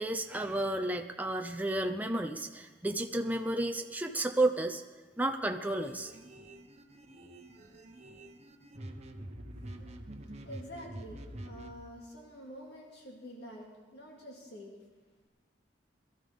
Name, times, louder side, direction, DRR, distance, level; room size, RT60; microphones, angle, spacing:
voice 1, 0.0-4.8 5.2-6.1, right 1 dB, 10° right, 5 dB, 0.6 m, -32 dB
sound 1, 5.8-11.7, right 1 dB, 40° right, 1.0 m, -47 dB
voice 2, 10.4-14.7, equal, 65° left, -1 dB, 2.5 m, -48 dB
21.5 x 13.5 x 3.7 m, 1.3 s
head